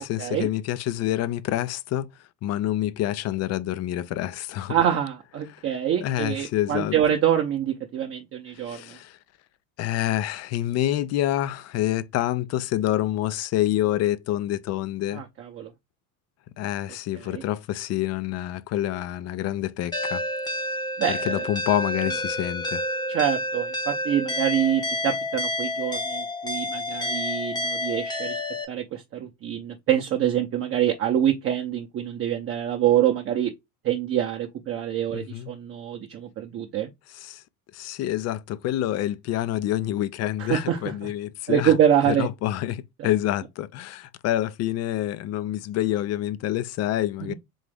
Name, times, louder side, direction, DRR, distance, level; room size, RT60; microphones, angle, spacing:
voice 1, 0.0-2.1 2.4-4.7 5.5-5.7 6.0-7.0 8.6-9.2 9.8-15.2 16.6-20.2 21.1-22.8 35.1-35.5 37.1-37.4 37.7-41.7 42.1-47.3, left 13 dB, 40° left, 0.4 m, -27 dB
voice 2, 4.7-9.0 15.1-15.7 17.3-17.4 21.0-21.5 23.1-28.4 28.7-33.5 33.8-36.9 40.4-41.1 41.5-42.3 43.0-43.1 47.2-47.3, right 10 dB, 35° right, 0.6 m, -25 dB
sound 1, 19.9-28.6, left 1 dB, 10° left, 0.7 m, -29 dB
3.9 x 2.9 x 3.4 m
supercardioid pair, 95°, 42 cm